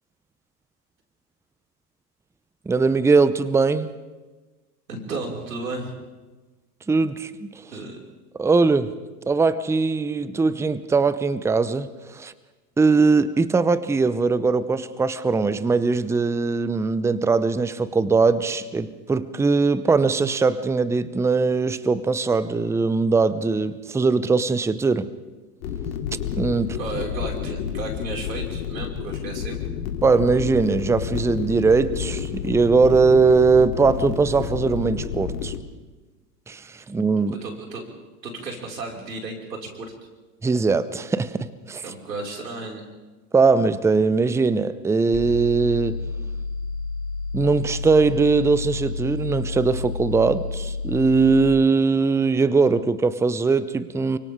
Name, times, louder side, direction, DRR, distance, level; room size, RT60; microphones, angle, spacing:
voice 1, 2.7-3.9 6.9-7.5 8.4-8.9 9.3-12.3 12.8-25.1 26.3-26.8 30.0-35.5 36.5-37.4 40.4-41.8 43.3-46.0 47.3-54.2, right 4 dB, 5° right, 15 dB, 0.7 m, -20 dB
voice 2, 4.9-6.0 7.7-8.0 26.7-29.6 37.3-37.8 38.2-39.9 41.8-42.9, right 3 dB, 85° right, -1 dB, 5.7 m, -33 dB
sound 1, 25.6-35.6, left 8 dB, 65° left, 3.0 m, -30 dB
sound 2, 45.1-51.5, left 3 dB, 35° left, 7.5 m, -30 dB
29.5 x 24.5 x 3.7 m, 1.2 s
hypercardioid pair, 100°, 48 cm